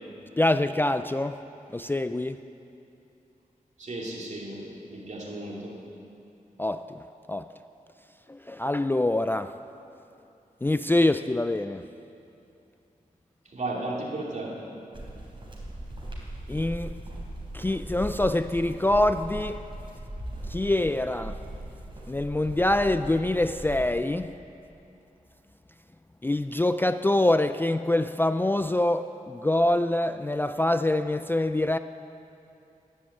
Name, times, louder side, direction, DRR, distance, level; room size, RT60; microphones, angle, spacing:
voice 1, 0.4-1.4 1.7-2.4 6.6-7.0 7.3-7.5 8.3-9.5 10.6-11.8 16.5-17.0 17.5-19.6 20.5-21.4 22.1-24.3 26.2-31.8, left 1 dB, 15° left, 10 dB, 0.3 m, -25 dB
voice 2, 3.8-5.7 13.5-14.6, right 2 dB, 55° right, -3 dB, 2.8 m, -34 dB
sound 1, 14.9-23.9, right 1 dB, 35° right, 3.9 m, -39 dB
11.0 x 11.0 x 8.6 m, 2.7 s
wide cardioid pair, 85°, 14 cm